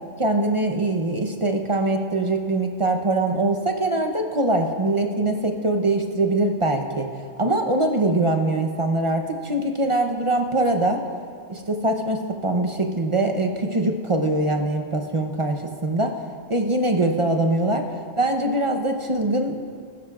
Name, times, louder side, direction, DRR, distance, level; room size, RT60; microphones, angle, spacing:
voice 1, 0.2-7.1 7.4-11.0 11.5-16.2 16.5-17.8 18.2-19.5, right 2 dB, 30° right, 4 dB, 0.7 m, -23 dB
16.5 x 14.5 x 2.4 m, 2.2 s
omnidirectional pair, 1.2 m